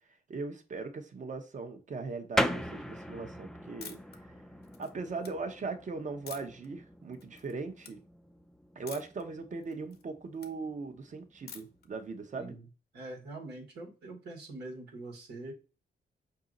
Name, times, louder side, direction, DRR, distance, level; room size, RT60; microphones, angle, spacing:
voice 1, 0.3-4.0 4.8-8.0 8.8-12.5, right 4 dB, 50° right, 0.9 m, -39 dB
sound 1, 2.4-12.5, equal, 5° left, 0.4 m, -39 dB
sound 2, 3.8-4.2 4.6-5.3 6.3-6.7 7.1-7.5 7.8-7.9 8.9-9.2 9.6-10.5 11.5-11.9, left 7 dB, 75° left, 0.7 m, -47 dB
voice 2, 12.9-15.5, right 2 dB, 90° right, 1.4 m, -44 dB
4.9 x 2.7 x 3.8 m
cardioid pair, 75°, 17 cm